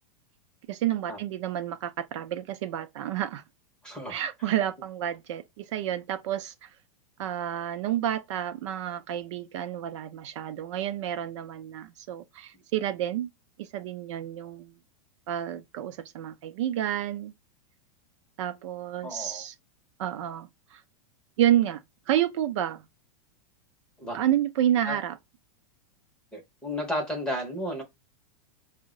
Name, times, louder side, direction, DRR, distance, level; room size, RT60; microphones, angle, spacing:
voice 1, 0.7-3.4 4.1-6.7 7.2-13.3 13.6-14.7 15.3-17.3 18.4-19.5 20.0-20.8 21.4-21.8 22.1-22.8 24.1-25.2, right 11 dB, 55° right, 0.5 m, -29 dB
voice 2, 3.8-4.5 19.0-19.4 24.0-24.2 24.8-25.0 26.3-27.8, left 1 dB, 5° left, 0.6 m, -33 dB
5.2 x 2.1 x 3.6 m
supercardioid pair, 165°, 18 cm